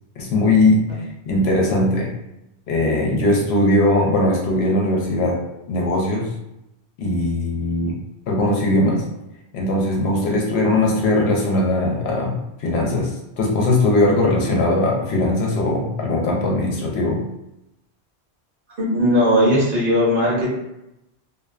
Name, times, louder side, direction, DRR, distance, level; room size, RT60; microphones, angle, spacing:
voice 1, 0.2-0.8 1.3-2.1 2.7-5.4 5.7-6.3 7.0-8.0 8.3-9.1 9.5-17.2, left 2 dB, 75° left, -1 dB, 0.8 m, -19 dB
voice 2, 18.8-20.5, equal, 55° right, -6 dB, 1.0 m, -18 dB
2.5 x 2.2 x 2.3 m, 0.88 s
omnidirectional pair, 1.1 m